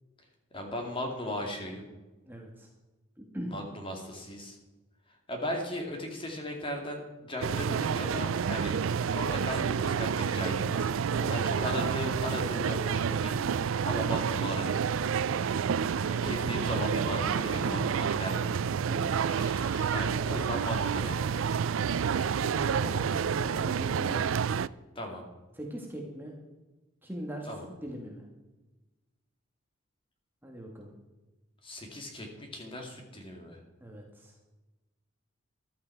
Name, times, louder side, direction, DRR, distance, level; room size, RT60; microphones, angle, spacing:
voice 1, 0.5-1.8 3.5-4.6 5.3-8.7 9.1-13.4 13.6-14.7 16.1-18.6 19.9-21.6 25.0-25.2 27.5-27.7 31.6-33.6, left 1 dB, 25° left, 2 dB, 2.5 m, -37 dB
voice 2, 2.3-2.7 3.2-3.5 11.0-11.4 17.5-17.8 18.9-19.2 22.4-24.4 25.5-26.4 27.0-28.2 30.4-30.9 33.8-34.4, equal, 10° right, 0 dB, 1.7 m, -41 dB
sound 1, 7.4-24.7, right 7 dB, 80° right, 0.4 m, -29 dB
sound 2, 18.6-23.4, left 2 dB, 65° left, 5.8 m, -52 dB
14.5 x 12.0 x 4.7 m, 1.1 s
head